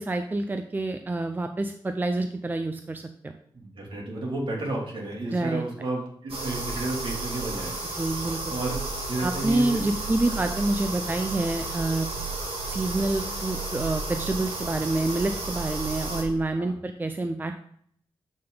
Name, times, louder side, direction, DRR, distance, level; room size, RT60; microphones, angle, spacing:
voice 1, 0.0-3.3 5.3-5.6 7.9-8.5 9.2-12.1 12.7-17.5, right 2 dB, 20° right, 6 dB, 0.6 m, -27 dB
voice 2, 3.5-7.7 8.5-8.8 9.1-9.8 16.6-16.7, right 2 dB, 60° right, -2 dB, 2.8 m, -32 dB
sound 1, 6.3-16.2, right 3 dB, 90° right, 2.0 m, -32 dB
9.9 x 6.0 x 3.9 m, 0.64 s
wide cardioid pair, 105°, 10 cm